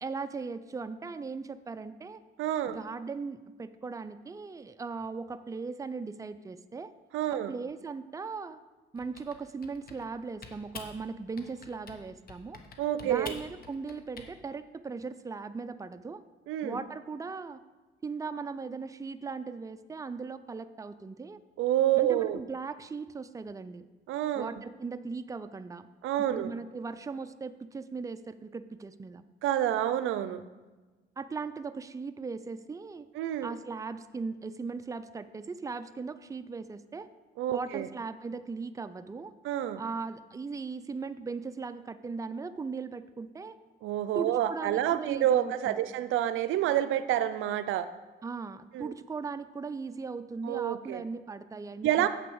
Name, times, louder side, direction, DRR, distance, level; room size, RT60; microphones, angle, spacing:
voice 1, 0.0-2.2 2.7-6.9 7.3-8.6 8.9-12.6 13.0-16.2 16.6-17.6 18.0-21.4 22.0-23.9 24.3-25.9 26.2-29.2 31.2-33.1 33.4-37.1 37.5-39.3 39.8-43.6 44.1-45.8 48.2-52.1, right 4 dB, 15° right, 11 dB, 0.5 m, -38 dB
voice 2, 2.4-2.8 7.1-7.5 12.8-13.3 16.5-16.8 21.6-22.4 24.1-24.5 26.0-26.5 29.4-30.4 33.2-33.5 37.4-37.9 39.4-39.8 43.8-47.9 48.7-48.9 50.4-51.0 51.8-52.1, right 12 dB, 85° right, 12 dB, 0.5 m, -28 dB
Typing, 9.0-10.1 10.4-11.0 11.4-12.0 12.3-14.3, left 4 dB, 50° left, 1.2 m, -46 dB
8.0 x 5.9 x 6.3 m, 1.2 s
cardioid pair, 90°, 20 cm